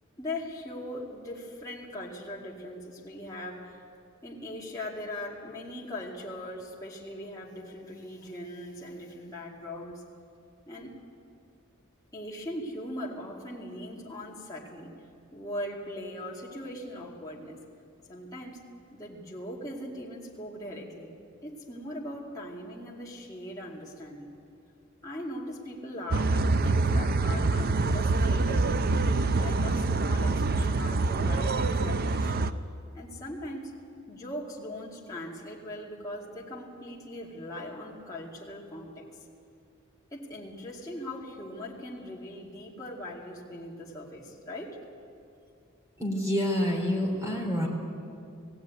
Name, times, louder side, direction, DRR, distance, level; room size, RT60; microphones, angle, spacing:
voice 1, 0.2-3.8 4.2-10.0 10.7-11.0 12.1-14.9 15.3-17.6 18.1-18.6 18.9-21.1 21.4-24.3 25.0-28.7 29.4-32.5 32.9-33.8 34.1-39.1 40.1-44.8, left 1 dB, 15° left, -4 dB, 2.4 m, -40 dB
sound 1, 26.1-32.5, right 3 dB, 45° right, 0.6 m, -25 dB
voice 2, 46.0-47.7, left 1 dB, 15° right, 0 dB, 3.8 m, -27 dB
19.5 x 15.5 x 9.4 m, 2.4 s
head